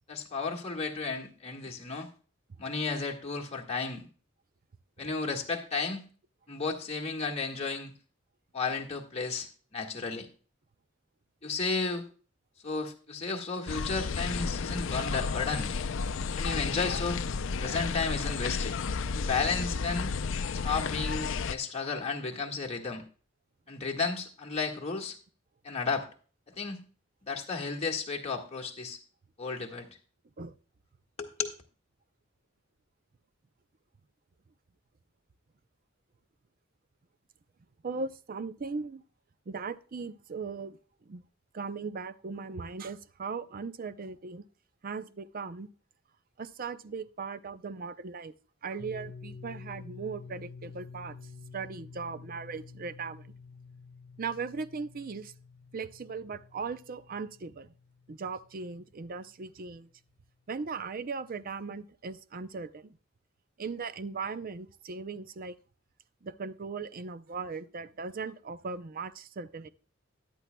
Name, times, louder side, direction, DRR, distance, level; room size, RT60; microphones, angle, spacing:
voice 1, 0.1-2.1 2.6-4.1 5.0-6.0 6.5-7.9 8.5-10.3 11.4-12.0 12.6-15.7 16.4-17.2 17.6-18.8 19.1-20.1 20.5-23.0 23.7-25.2 25.6-26.1 26.5-26.8 27.3-29.0 29.4-30.0 31.2-31.6, left 4 dB, 30° left, 1.7 m, -33 dB
sound 1, 13.7-21.6, left 5 dB, 70° left, 0.5 m, -32 dB
voice 2, 37.8-39.0 39.5-40.8 41.1-41.2 41.5-44.4 44.8-45.7 46.4-48.3 48.6-51.2 51.5-53.3 54.2-55.3 55.7-57.7 58.1-59.9 60.5-63.0 63.6-65.5 66.2-69.7, right 4 dB, 45° right, 0.5 m, -38 dB
sound 2, 48.8-59.4, left 4 dB, 50° left, 1.1 m, -49 dB
14.5 x 10.5 x 2.2 m
head